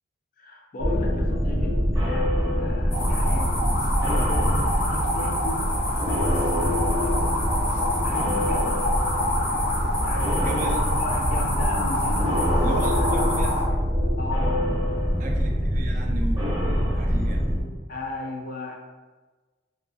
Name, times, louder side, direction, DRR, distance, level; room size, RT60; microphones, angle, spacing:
voice 1, 0.4-3.7 4.0-4.4 4.8-5.8 6.5-7.2 7.6-7.8 8.0-8.9 10.0-13.1 14.2-14.7 15.2-15.3 17.9-18.7, left 2 dB, 45° left, 0 dB, 0.4 m, -36 dB
sound 1, 0.8-17.6, equal, 15° right, 0.6 m, -24 dB
sound 2, 2.9-13.7, left 1 dB, 70° left, 0.8 m, -27 dB
voice 2, 10.4-10.9 12.6-13.8 15.2-17.7, right 2 dB, 40° right, 2 dB, 0.3 m, -36 dB
2.6 x 2.4 x 2.6 m, 1.3 s
head